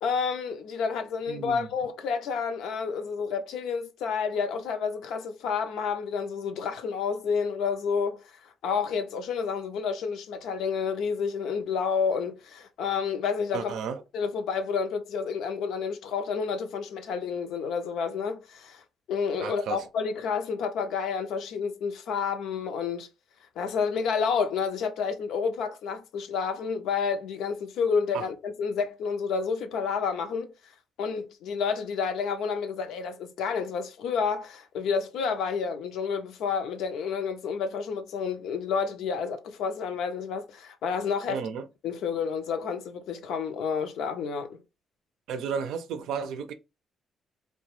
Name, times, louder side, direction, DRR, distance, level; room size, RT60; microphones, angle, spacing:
voice 1, 0.0-8.2 8.6-13.8 14.1-18.8 19.1-23.1 23.6-30.5 31.0-41.4 41.8-44.6, left 6 dB, 85° left, 0.5 m, -30 dB
voice 2, 1.3-1.7 13.5-14.0 19.4-19.9 28.1-28.3 41.3-41.7 45.3-46.5, right 6 dB, 85° right, 0.5 m, -33 dB
2.8 x 2.1 x 3.0 m
cardioid pair, 90°, 0 cm